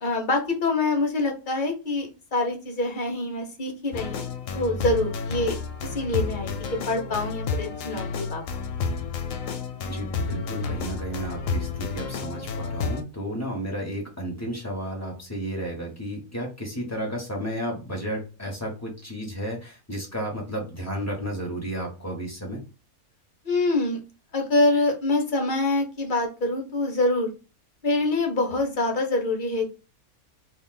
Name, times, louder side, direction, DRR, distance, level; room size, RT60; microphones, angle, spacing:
voice 1, 0.0-4.2 4.5-5.6 5.9-6.5 6.9-8.4 8.9-9.0 23.4-24.0 24.3-27.3 27.8-29.7, left 2 dB, 45° left, 2 dB, 0.7 m, -25 dB
sound 1, 3.9-13.0, left 4 dB, 70° left, 0.9 m, -31 dB
voice 2, 9.9-22.6, right 1 dB, 15° left, 0 dB, 0.8 m, -32 dB
3.0 x 2.6 x 3.7 m, 0.32 s
omnidirectional pair, 1.6 m